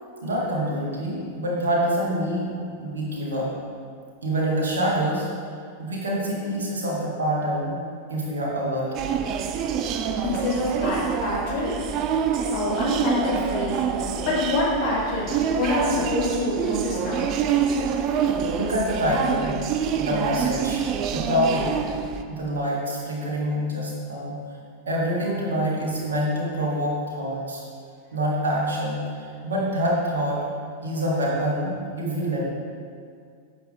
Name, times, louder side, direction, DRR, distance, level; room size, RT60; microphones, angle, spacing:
voice 1, 0.2-3.5 4.2-5.3 5.8-7.7 8.1-8.9 18.5-19.6 20.0-20.9 21.1-21.7 22.3-24.4 24.9-27.6 28.1-30.4 30.8-32.4, equal, 65° right, -4 dB, 2.2 m, -26 dB
sound 1, 8.9-22.2, right 7 dB, 35° right, 0.5 m, -26 dB
voice 2, 10.2-11.8 12.5-17.3, left 2 dB, 45° left, -4 dB, 2.2 m, -26 dB
10.0 x 7.0 x 3.6 m, 2.2 s
figure-of-eight pair, 90°, 0 cm